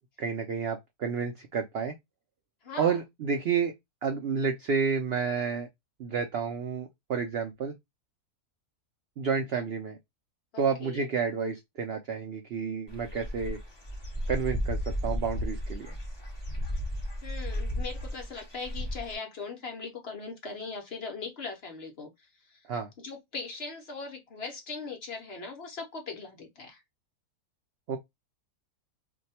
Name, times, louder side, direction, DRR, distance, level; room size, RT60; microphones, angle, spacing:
voice 1, 0.2-1.9 2.8-3.7 4.0-5.7 6.0-7.7 9.2-10.0 10.6-13.6 14.3-15.9 22.7-22.9 27.9-28.0, right 6 dB, 70° right, 0.5 m, -30 dB
voice 2, 2.6-3.0 10.5-11.1 17.2-22.1 22.5-22.6 23.0-26.8, left 4 dB, 50° left, 0.9 m, -40 dB
Dog / Bird, 12.9-19.1, equal, 20° left, 0.8 m, -34 dB
2.7 x 2.2 x 4.1 m
omnidirectional pair, 1.6 m